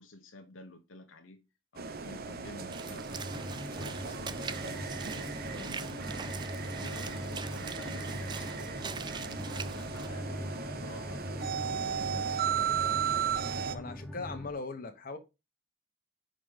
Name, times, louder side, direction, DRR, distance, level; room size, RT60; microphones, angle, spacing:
voice 1, 0.0-1.4 1.7-3.1 3.8-5.9 6.8-12.7, left 2 dB, 70° left, 1.0 m, -50 dB
sound 1, 1.8-13.8, right 7 dB, 50° right, 0.8 m, -36 dB
Walk footsteps / Splash splatter, 2.7-10.1, right 6 dB, 20° right, 0.3 m, -43 dB
sound 2, 3.1-14.5, left 1 dB, ahead, 0.9 m, -42 dB
voice 2, 13.7-15.2, left 3 dB, 45° left, 1.3 m, -39 dB
5.2 x 5.1 x 6.3 m
head